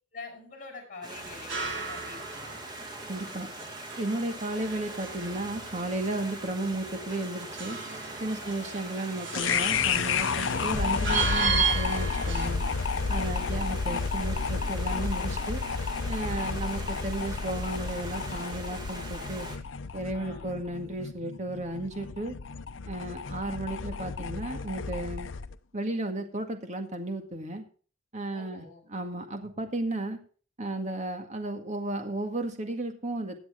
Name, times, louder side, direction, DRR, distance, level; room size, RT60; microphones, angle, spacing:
voice 1, 0.1-2.6 8.4-8.8 13.1-13.7 16.2-16.6 20.1-20.5 28.3-28.9, left 3 dB, 45° left, 2 dB, 7.2 m, -46 dB
Stream, 1.0-19.6, right 2 dB, 20° right, 2.1 m, -42 dB
sound 1, 1.2-12.5, right 5 dB, 70° right, 4.0 m, -35 dB
voice 2, 3.1-3.5 4.0-7.8 8.2-12.6 13.1-15.6 16.1-19.5 19.9-22.3 22.9-25.3 25.7-27.6 28.1-28.6 28.9-30.2 30.6-33.4, right 2 dB, 40° right, 5 dB, 1.9 m, -34 dB
sound 2, 9.3-25.5, left 5 dB, 80° left, 0.8 m, -31 dB
16.5 x 9.2 x 3.7 m, 0.41 s
head